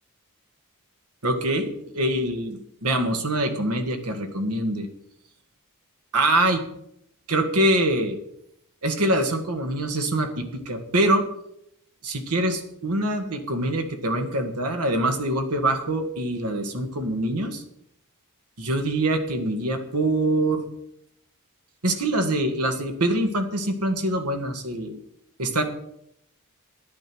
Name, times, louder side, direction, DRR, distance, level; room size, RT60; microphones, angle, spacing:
voice 1, 1.2-1.7 1.9-4.9 6.1-6.6 7.3-8.2 8.8-11.2 12.0-17.6 18.6-20.6 21.8-25.0 25.4-25.6, right 1 dB, 85° right, 7 dB, 1.8 m, -24 dB
10.5 x 9.7 x 6.1 m, 0.76 s
head